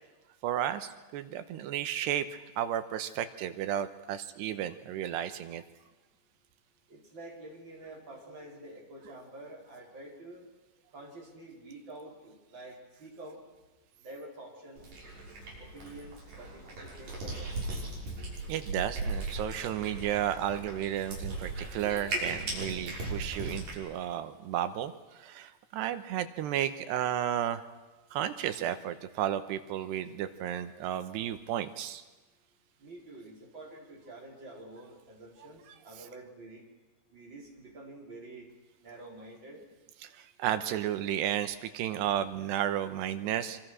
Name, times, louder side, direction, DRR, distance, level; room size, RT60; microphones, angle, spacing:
voice 1, 0.4-5.6 18.5-27.6 28.1-32.0 40.0-43.6, right 11 dB, 80° right, 11 dB, 3.1 m, -33 dB
voice 2, 6.9-10.4 10.9-13.4 14.0-14.8 15.6-17.5 32.8-36.6 37.1-38.5 38.8-39.6, right 2 dB, 25° right, -1 dB, 5.4 m, -48 dB
Cat, 14.8-23.8, right 2 dB, 55° right, 7.9 m, -38 dB
25.5 x 25.5 x 6.4 m, 1.2 s
omnidirectional pair, 4.9 m